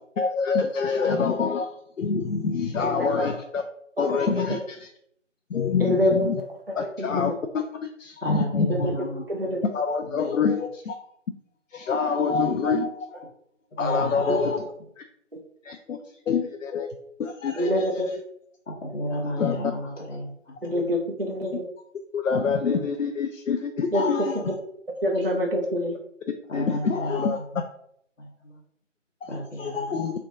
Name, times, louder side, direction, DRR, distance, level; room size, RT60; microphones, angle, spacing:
voice 1, 0.2-3.6 4.0-4.9 5.5-6.4 6.8-7.6 8.0-8.8 9.6-10.9 11.7-13.3 13.8-14.6 15.0-15.1 15.6-16.0 16.3-16.9 17.2-18.0 19.4-19.6 21.5-21.6 22.1-24.5 26.5-27.4 29.2-29.3 29.6-30.1, left 5 dB, 85° left, 4 dB, 0.5 m, -26 dB
voice 2, 2.8-3.3 4.0-4.1 5.8-7.1 8.7-8.8 9.3-9.6 14.3-14.4 17.6-18.1 20.6-21.6 23.9-24.5 25.0-25.9, equal, 50° right, 1 dB, 0.5 m, -26 dB
voice 3, 8.2-9.6 10.1-10.2 13.8-14.5 18.7-20.8 26.5-27.3 27.5-27.6 28.2-28.5 29.3-29.8, equal, 65° left, -5 dB, 1.2 m, -32 dB
3.3 x 2.6 x 3.7 m, 0.72 s
figure-of-eight pair, 180°, 38 cm